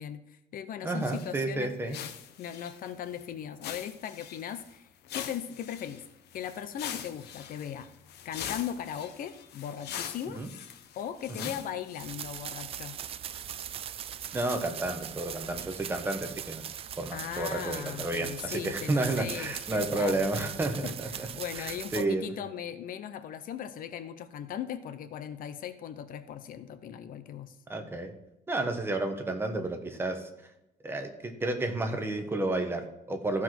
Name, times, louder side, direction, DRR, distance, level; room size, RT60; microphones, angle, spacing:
voice 1, 0.0-2.1 2.4-6.0 6.3-7.9 8.2-10.4 11.0-13.0 17.1-20.5 20.8-27.6, left 9 dB, 60° left, 11 dB, 0.7 m, -38 dB
voice 2, 0.8-2.0 10.3-10.5 11.4-11.5 14.3-16.6 17.0-21.3 21.5-22.3 27.7-28.1 28.5-30.3 30.8-33.4, right 2 dB, 15° right, 5 dB, 1.1 m, -31 dB
sound 1, 1.0-1.3 1.6-1.7 1.9-3.2 3.6-4.7 5.0-12.1, left 9 dB, 90° left, 1.0 m, -42 dB
sound 2, 12.0-22.0, right 9 dB, 35° right, 0.4 m, -40 dB
14.0 x 4.8 x 6.0 m, 0.86 s
cardioid pair, 175°, 16 cm